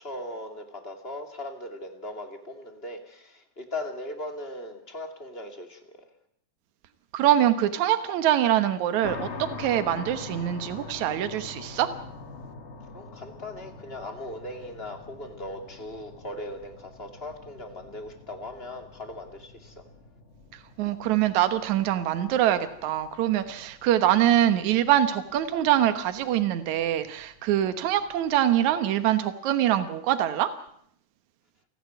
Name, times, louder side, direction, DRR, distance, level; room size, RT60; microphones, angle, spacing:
voice 1, 0.0-6.0 12.9-19.8, left 1 dB, 20° left, 6 dB, 2.4 m, -39 dB
voice 2, 7.1-9.3 9.6-11.9 20.8-30.5, right 12 dB, 75° right, 10 dB, 2.6 m, -24 dB
sound 1, 9.0-28.7, left 4 dB, 35° left, 1.0 m, -45 dB
29.5 x 11.0 x 9.3 m, 0.69 s
omnidirectional pair, 3.4 m